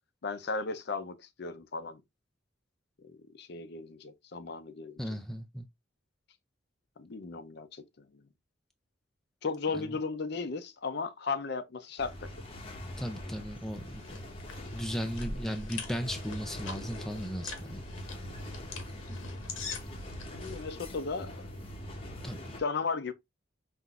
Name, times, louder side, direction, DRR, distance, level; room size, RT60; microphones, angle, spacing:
voice 1, 0.2-2.0 3.0-5.2 7.0-8.2 9.4-12.3 20.3-21.5 22.6-23.1, left 4 dB, 55° left, 0.5 m, -36 dB
voice 2, 5.0-5.7 9.8-9.9 13.0-14.2 14.7-17.8 22.2-22.6, equal, ahead, 0.3 m, -36 dB
sound 1, 12.0-22.6, equal, 30° left, 0.8 m, -42 dB
sound 2, 13.5-20.6, left 5 dB, 85° left, 1.0 m, -45 dB
5.6 x 2.5 x 2.4 m
head